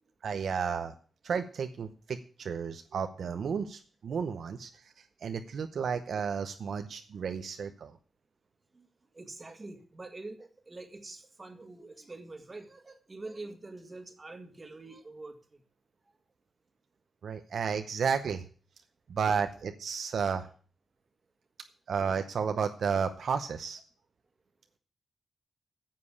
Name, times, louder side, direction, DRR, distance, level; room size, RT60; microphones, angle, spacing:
voice 1, 0.2-0.9 1.2-4.7 5.2-7.9 17.2-18.4 19.1-20.5 21.9-23.8, right 6 dB, 60° right, 7 dB, 0.7 m, -32 dB
voice 2, 9.1-15.6, right 2 dB, 20° right, 5 dB, 1.8 m, -45 dB
9.7 x 7.6 x 8.5 m, 0.42 s
wide cardioid pair, 160°, 0 cm